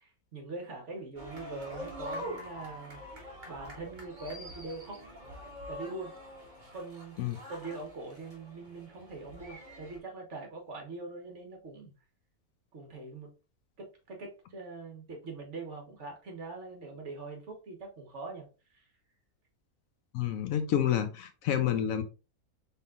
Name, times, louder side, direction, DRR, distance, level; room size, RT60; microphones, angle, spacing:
voice 1, 0.0-5.0 5.7-6.2 6.7-7.2 7.5-11.9 12.7-13.3 13.8-18.9, right 3 dB, 55° right, 2 dB, 1.5 m, -43 dB
sound 1, 1.2-10.0, equal, 30° right, 1.6 m, -45 dB
voice 2, 20.1-22.0, left 10 dB, 70° left, 9 dB, 1.0 m, -29 dB
5.5 x 3.6 x 2.4 m, 0.32 s
omnidirectional pair, 1.5 m